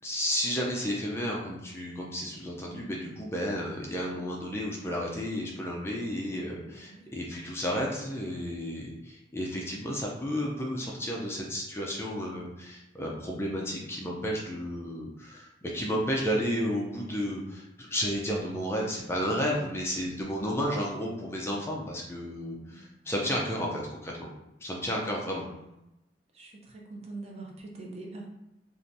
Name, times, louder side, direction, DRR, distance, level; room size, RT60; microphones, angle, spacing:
voice 1, 0.0-24.3 24.6-25.5, equal, 15° left, -2 dB, 0.4 m, -32 dB
voice 2, 6.6-7.1 22.6-23.1 25.0-25.4 26.3-28.3, right 2 dB, 35° right, -1 dB, 0.6 m, -44 dB
3.3 x 2.5 x 2.6 m, 0.89 s
head